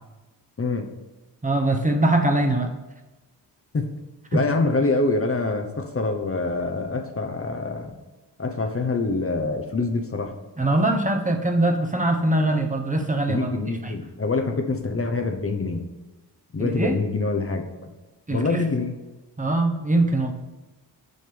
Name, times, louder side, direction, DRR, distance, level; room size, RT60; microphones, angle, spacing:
voice 1, 0.6-0.9 3.7-3.9 4.3-7.9 8.4-10.4 13.3-15.8 16.5-17.7 18.3-18.9, left 3 dB, 30° left, 5 dB, 0.9 m, -25 dB
voice 2, 1.4-2.7 4.3-4.4 10.6-13.5 13.8-13.9 16.6-17.0 18.3-18.6 19.4-20.3, right 2 dB, 20° right, 3 dB, 1.1 m, -22 dB
6.5 x 5.3 x 6.9 m, 1.1 s
cardioid pair, 80°, 42 cm